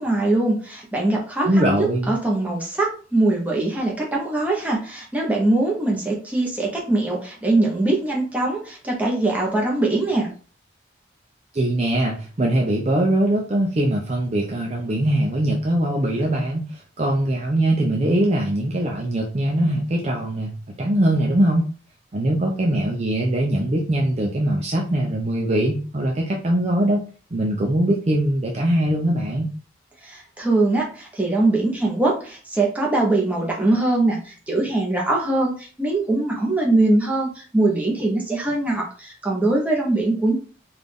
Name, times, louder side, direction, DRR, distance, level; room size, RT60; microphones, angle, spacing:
voice 1, 0.0-10.3 30.0-40.3, right 2 dB, 10° right, -2 dB, 0.9 m, -22 dB
voice 2, 1.5-2.1 11.5-21.7 22.1-27.0 27.3-29.5, right 1 dB, 35° right, -1 dB, 0.5 m, -21 dB
3.8 x 2.5 x 3.4 m, 0.38 s
head